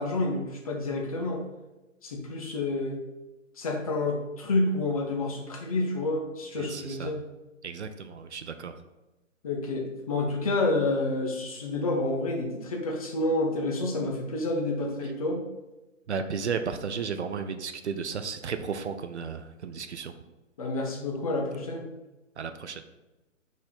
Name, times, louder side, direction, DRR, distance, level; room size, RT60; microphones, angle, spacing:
voice 1, 0.0-1.4 2.0-3.0 3.6-7.2 9.4-15.4 20.6-21.8, left 2 dB, 30° left, 0 dB, 0.6 m, -29 dB
voice 2, 6.6-7.1 7.6-8.7 16.1-20.1 22.4-22.8, right 6 dB, 60° right, 9 dB, 0.5 m, -34 dB
4.0 x 2.9 x 4.2 m, 1.0 s
figure-of-eight pair, 135°, 39 cm